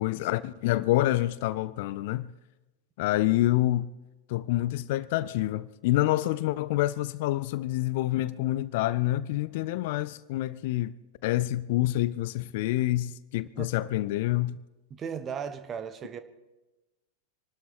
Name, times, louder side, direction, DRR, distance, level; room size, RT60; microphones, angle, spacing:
voice 1, 0.0-2.3 3.0-3.9 4.3-10.9 11.2-14.6, left 16 dB, 50° left, 0.5 m, -27 dB
voice 2, 14.9-16.2, right 7 dB, 25° right, 1.2 m, -36 dB
26.5 x 12.5 x 4.3 m
figure-of-eight pair, 90°, 0 cm